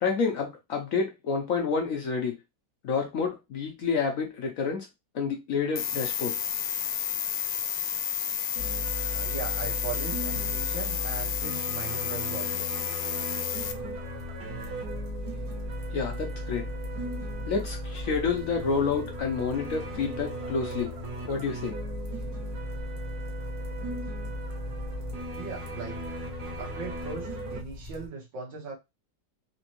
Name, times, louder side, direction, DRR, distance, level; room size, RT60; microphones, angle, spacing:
voice 1, 0.0-2.4 2.8-4.9 5.1-6.4 15.9-16.7 17.5-20.9 21.3-21.7, left 5 dB, 65° left, 0.9 m, -29 dB
sound 1, 5.7-13.7, left 10 dB, 85° left, 1.3 m, -31 dB
sound 2, 8.5-27.6, equal, 65° right, 1.4 m, -36 dB
voice 2, 9.0-12.7 18.6-18.7 25.4-26.0 26.6-28.8, right 5 dB, 85° right, 2.1 m, -39 dB
sound 3, 13.5-28.1, right 1 dB, 45° right, 1.4 m, -45 dB
4.2 x 2.9 x 2.9 m
omnidirectional pair, 2.0 m